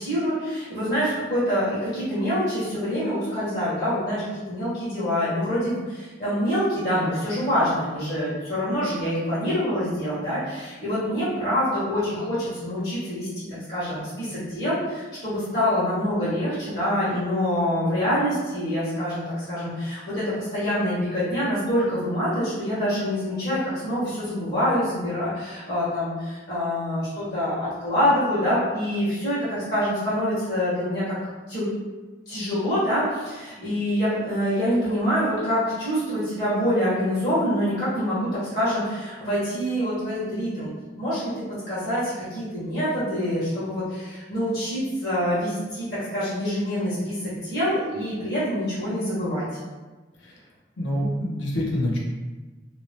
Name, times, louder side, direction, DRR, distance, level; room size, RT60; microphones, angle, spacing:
voice 1, 0.0-31.0 31.5-31.7 32.3-40.7 41.0-41.3 41.7-49.4, equal, 60° left, -11 dB, 1.1 m, -26 dB
voice 2, 50.8-52.0, left 1 dB, 80° left, -3 dB, 0.7 m, -26 dB
2.8 x 2.1 x 2.8 m, 1.3 s
head